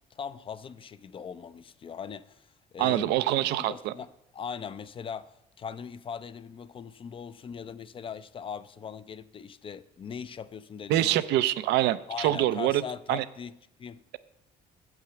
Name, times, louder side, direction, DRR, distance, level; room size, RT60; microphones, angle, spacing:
voice 1, 0.1-4.1 4.3-11.2 12.1-14.0, left 6 dB, 30° left, 0.4 m, -40 dB
voice 2, 2.8-3.9 10.9-12.8 13.1-13.2, right 14 dB, 85° right, 0.5 m, -25 dB
7.6 x 5.9 x 6.9 m
cardioid pair, 110°, 17 cm